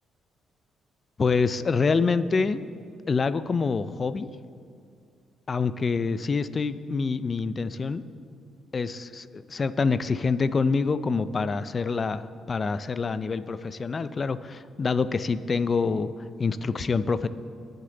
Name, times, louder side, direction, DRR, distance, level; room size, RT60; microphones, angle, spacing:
voice 1, 1.2-2.7 3.1-4.3 5.5-8.0 8.7-17.3, left 4 dB, 35° left, 14 dB, 0.5 m, -26 dB
19.0 x 6.6 x 3.9 m, 2.4 s
cardioid pair, 90°, 0 cm